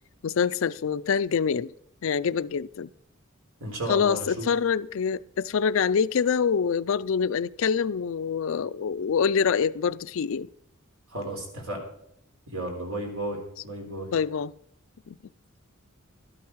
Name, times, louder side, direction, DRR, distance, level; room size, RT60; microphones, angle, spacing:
voice 1, 0.2-1.7 2.0-2.9 3.9-10.5 14.1-14.5 15.1-15.2, left 6 dB, 65° left, 0.4 m, -25 dB
voice 2, 3.6-4.5 11.1-11.9 12.5-14.1, right 1 dB, 85° right, 3.8 m, -33 dB
12.5 x 12.0 x 4.7 m
head